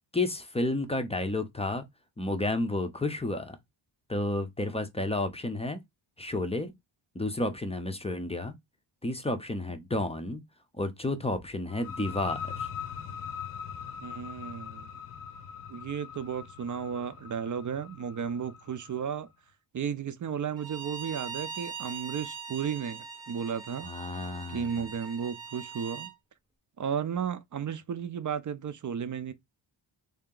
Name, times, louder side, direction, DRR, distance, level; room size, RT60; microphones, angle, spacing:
voice 1, 0.1-1.8 2.2-3.6 4.1-5.8 6.2-6.7 7.1-8.5 9.0-10.4 10.8-12.7 23.8-24.9, left 2 dB, 15° left, 0.5 m, -31 dB
sound 1, 11.7-19.2, left 7 dB, 85° left, 0.9 m, -41 dB
voice 2, 14.0-14.9 15.7-19.3 19.7-23.9 24.5-26.1 26.8-29.3, right 7 dB, 40° right, 0.5 m, -34 dB
Bowed string instrument, 20.6-26.1, right 6 dB, 10° right, 0.8 m, -41 dB
3.3 x 2.8 x 3.7 m
wide cardioid pair, 125°, 49 cm